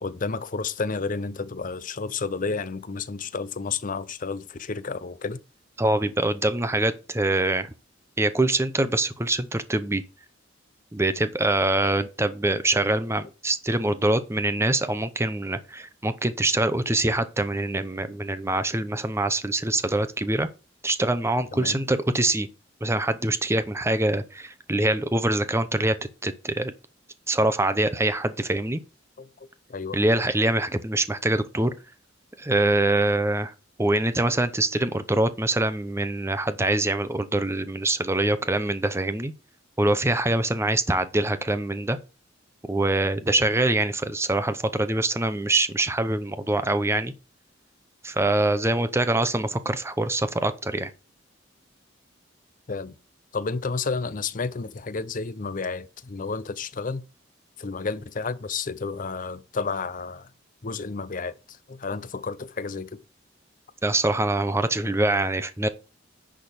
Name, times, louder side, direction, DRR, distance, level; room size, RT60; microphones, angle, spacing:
voice 1, 0.0-5.4 21.5-21.8 29.2-30.0 52.7-53.0 53.3-57.0 57.6-60.3 60.6-63.0, left 4 dB, 45° left, 0.6 m, -31 dB
voice 2, 5.8-7.7 8.2-10.0 10.9-20.5 20.8-22.5 22.8-26.0 26.2-26.7 27.3-28.8 29.9-31.7 32.4-33.5 33.8-39.3 39.8-42.0 42.7-47.1 48.0-50.9 63.8-65.7, right 2 dB, 15° right, 0.8 m, -24 dB
10.5 x 3.7 x 6.7 m
head